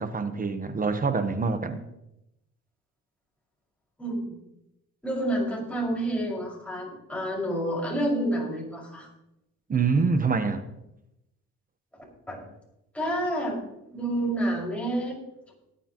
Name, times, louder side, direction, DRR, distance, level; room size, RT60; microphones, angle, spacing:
voice 1, 0.0-1.8 9.7-10.6, right 4 dB, 30° right, 9 dB, 1.0 m, -25 dB
voice 2, 4.0-4.4 5.0-9.1 12.3-12.4 12.9-13.6 13.9-15.2, right 1 dB, 5° left, -4 dB, 5.3 m, -29 dB
19.0 x 10.0 x 3.0 m, 0.88 s
cardioid pair, 110°, 30 cm